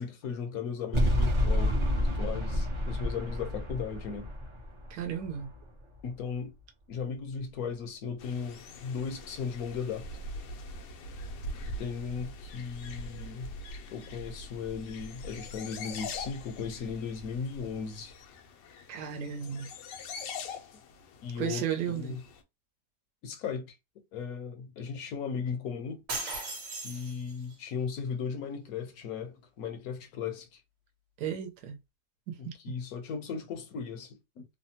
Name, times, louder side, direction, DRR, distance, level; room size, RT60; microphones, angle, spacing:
voice 1, 0.0-4.3 6.0-6.5 6.9-10.1 11.8-13.5 13.9-18.1 21.2-22.2 23.2-23.8 24.1-26.0 26.8-30.6 32.4-34.5, left 6 dB, 65° left, 1.0 m, -37 dB
sound 1, 0.9-6.1, equal, 35° right, 0.5 m, -29 dB
voice 2, 4.9-5.5 18.9-19.7 21.4-22.2 31.2-31.7 32.3-32.5, right 8 dB, 75° right, 1.2 m, -34 dB
sound 2, 8.2-22.4, left 2 dB, 85° left, 1.3 m, -43 dB
sound 3, 26.1-27.6, right 2 dB, 55° right, 1.2 m, -37 dB
3.3 x 2.1 x 2.7 m
omnidirectional pair, 1.8 m